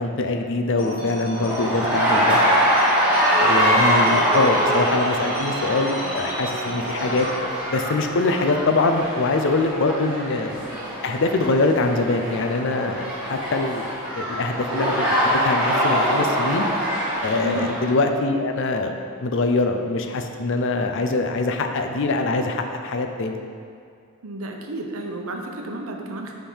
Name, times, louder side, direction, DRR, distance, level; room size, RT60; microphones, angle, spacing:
voice 1, 0.0-2.4 3.1-7.3 7.7-10.5 11.0-16.7 17.2-23.4, left 3 dB, 60° left, 5 dB, 0.5 m, -23 dB
sound 1, 0.8-7.4, right 2 dB, 45° left, 1.7 m, -35 dB
sound 2, 1.3-17.9, equal, 5° right, 1.5 m, -23 dB
voice 2, 17.4-17.7 24.2-26.3, right 1 dB, 75° right, 2 dB, 0.8 m, -32 dB
7.2 x 3.6 x 5.5 m, 2.3 s
head